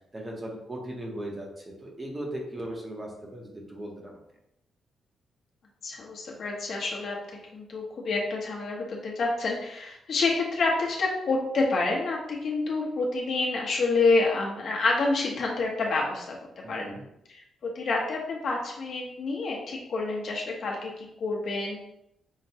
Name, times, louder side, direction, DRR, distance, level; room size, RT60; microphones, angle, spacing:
voice 1, 0.1-4.2 16.6-17.1, right 1 dB, 20° right, -1 dB, 0.7 m, -38 dB
voice 2, 5.8-7.2 7.5-16.4 16.7-16.9 17.3-21.8, left 3 dB, 55° left, -2 dB, 0.9 m, -28 dB
5.6 x 2.2 x 2.8 m, 0.80 s
cardioid pair, 150°, 0 cm